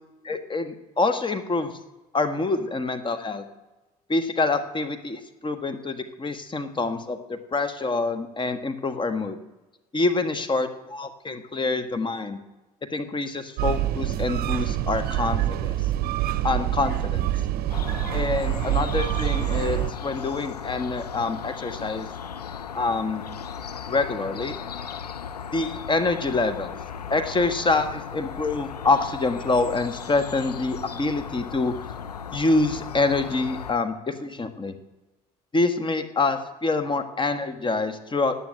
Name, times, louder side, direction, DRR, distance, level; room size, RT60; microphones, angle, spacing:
voice 1, 0.3-1.8 2.1-3.4 4.1-9.4 9.9-12.4 12.9-15.8 16.4-17.3 18.1-22.1 22.7-23.2 23.9-24.5 25.5-26.8 27.1-31.7 32.3-34.7 35.5-38.4, left 3 dB, 25° left, 9 dB, 1.5 m, -26 dB
sound 1, 13.6-19.9, right 13 dB, 50° right, 0.7 m, -26 dB
sound 2, 17.7-33.7, left 7 dB, 85° left, 0.5 m, -36 dB
14.5 x 9.1 x 7.8 m, 1.1 s
figure-of-eight pair, 55°, 20 cm